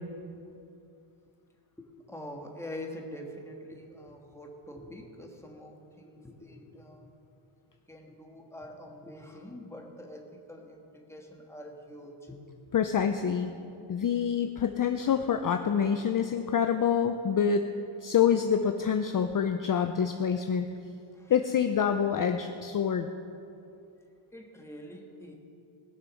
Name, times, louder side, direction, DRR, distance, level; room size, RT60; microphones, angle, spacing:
voice 1, 1.8-7.1 7.9-12.4 21.1-21.3 24.3-25.3, left 1 dB, 5° left, 1 dB, 1.4 m, -45 dB
voice 2, 12.7-13.5 13.9-17.7 18.0-20.7 21.3-23.1, left 7 dB, 40° left, 6 dB, 0.5 m, -26 dB
19.5 x 6.8 x 6.3 m, 2.7 s
wide cardioid pair, 145°, 50 cm